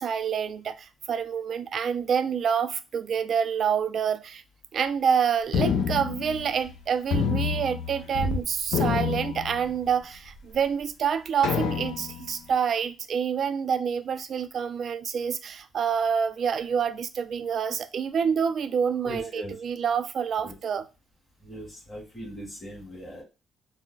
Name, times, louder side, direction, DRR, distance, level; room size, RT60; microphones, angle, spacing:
voice 1, 0.0-4.4 4.7-20.9, right 7 dB, 60° right, 0.3 m, -27 dB
sound 1, 5.5-6.8 7.1-8.4 8.7-10.0 10.6-10.7 11.4-12.3, left 6 dB, 80° left, 0.5 m, -28 dB
voice 2, 19.0-19.5 20.4-20.5 21.4-23.2, equal, 25° left, 1.6 m, -39 dB
3.8 x 2.0 x 2.3 m
cardioid pair, 90°, 0 cm